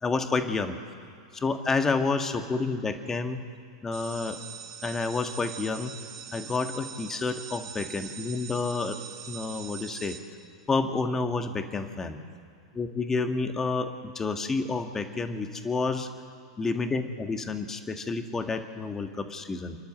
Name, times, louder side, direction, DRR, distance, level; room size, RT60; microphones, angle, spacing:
voice 1, 0.0-0.7 1.3-3.4 3.8-4.4 4.8-6.0 6.3-9.0 9.3-10.2 10.7-12.2 12.7-16.1 16.6-19.8, left 4 dB, 20° left, 6 dB, 1.7 m, -29 dB
sound 1, 3.9-10.2, right 9 dB, 60° right, 2.8 m, -42 dB
28.5 x 11.5 x 7.8 m, 2.4 s
figure-of-eight pair, 95°, 2 cm